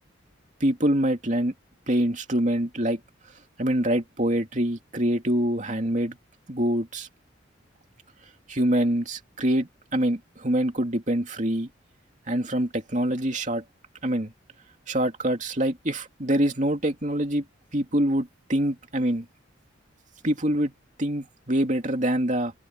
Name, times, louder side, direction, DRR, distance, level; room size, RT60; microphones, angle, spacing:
voice 1, 0.6-1.5 1.9-3.0 3.6-6.2 6.5-7.1 8.5-11.7 12.3-13.6 14.0-14.3 14.9-17.4 17.7-19.3 20.2-20.7 21.0-22.5, right 1 dB, 40° right, 2.8 m, -25 dB
head